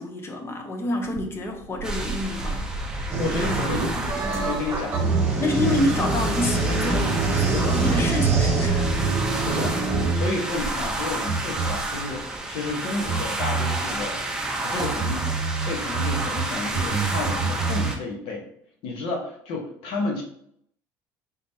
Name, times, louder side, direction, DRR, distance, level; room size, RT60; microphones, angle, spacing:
voice 1, 0.0-2.7 5.4-7.1 7.4-8.9, left 2 dB, 25° left, 4 dB, 0.8 m, -28 dB
sound 1, 1.1-7.2 7.5-10.6 10.9-12.7 13.0-16.5 16.7-18.0, right 5 dB, 55° right, 0.4 m, -29 dB
sound 2, 1.8-18.0, right 2 dB, 5° right, 0.7 m, -31 dB
sound 3, 3.1-10.1, right 3 dB, 30° right, 1.5 m, -25 dB
voice 2, 3.2-5.8 7.5-7.8 9.4-9.8 10.1-14.2 14.6-15.3 15.6-18.4 18.8-20.2, left 3 dB, 75° left, 1 dB, 1.2 m, -31 dB
3.9 x 3.6 x 2.7 m, 0.67 s
cardioid pair, 120°, 9 cm